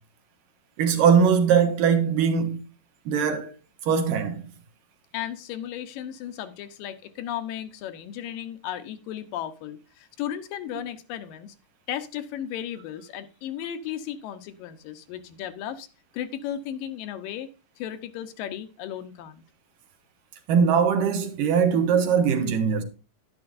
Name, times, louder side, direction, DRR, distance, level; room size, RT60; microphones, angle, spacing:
voice 1, 0.8-2.6 3.1-3.5 3.8-4.4 20.5-22.8, right 6 dB, 75° right, 2.9 m, -21 dB
voice 2, 5.1-11.6 11.9-15.9 16.1-17.5 17.8-19.4, left 10 dB, 80° left, 2.5 m, -35 dB
11.0 x 10.5 x 2.5 m
omnidirectional pair, 4.0 m